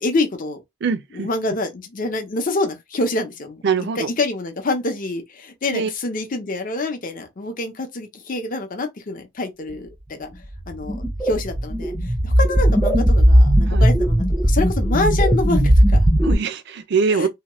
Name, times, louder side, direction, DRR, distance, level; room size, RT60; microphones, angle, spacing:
voice 1, 0.0-0.6 1.1-3.6 4.0-10.3 10.7-11.9 12.2-16.1 17.1-17.3, left 2 dB, 45° left, 0.6 m, -26 dB
voice 2, 0.8-1.3 3.6-4.1 5.7-5.9 13.7-13.8 16.2-17.3, right 5 dB, 55° right, 0.4 m, -22 dB
sound 1, 10.6-16.3, equal, 5° right, 0.5 m, -17 dB
2.8 x 2.2 x 3.0 m
head